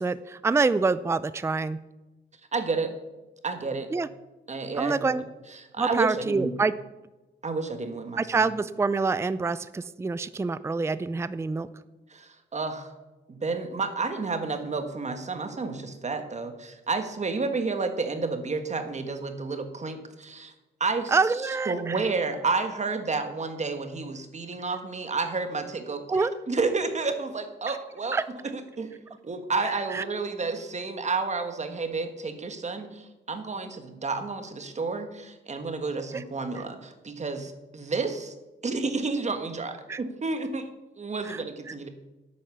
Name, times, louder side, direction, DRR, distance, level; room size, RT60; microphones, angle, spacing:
voice 1, 0.0-1.8 3.9-4.1 4.8-5.2 5.8-6.7 8.2-11.7 21.1-22.0 26.1-26.3 28.1-28.2 29.9-30.0 36.1-36.2 39.9-40.0 41.3-41.4, right 4 dB, 15° right, 15 dB, 0.4 m, -26 dB
voice 2, 2.5-2.9 3.4-3.9 4.5-6.5 7.4-8.4 12.1-12.9 13.3-20.5 20.8-21.2 21.7-28.2 28.4-28.9 29.2-38.3 38.6-40.7 41.0-41.9, right 4 dB, 35° right, 7 dB, 1.5 m, -31 dB
11.0 x 8.7 x 6.9 m, 1.1 s
cardioid pair, 115°, 19 cm